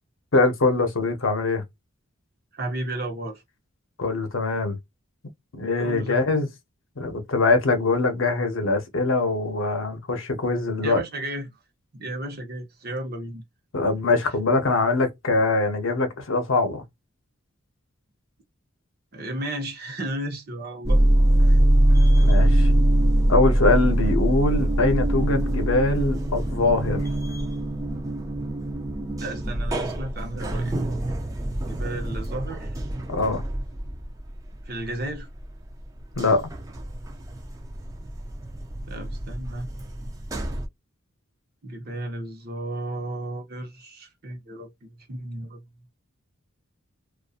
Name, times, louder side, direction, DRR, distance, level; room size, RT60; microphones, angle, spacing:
voice 1, 0.3-1.6 4.0-4.8 5.5-6.5 7.0-11.0 13.7-16.8 22.2-22.7 23.3-27.1 33.1-33.4 36.2-36.5, left 3 dB, 70° left, 0.7 m, -23 dB
voice 2, 2.5-3.4 5.8-6.4 10.8-11.5 11.9-13.4 19.1-21.0 21.5-21.6 29.2-30.7 31.6-32.8 34.6-35.3 38.9-39.7 41.6-45.6, right 1 dB, 45° right, 0.8 m, -33 dB
sound 1, 20.8-35.4 35.8-40.7, right 1 dB, 15° right, 0.3 m, -23 dB
2.6 x 2.3 x 2.4 m
head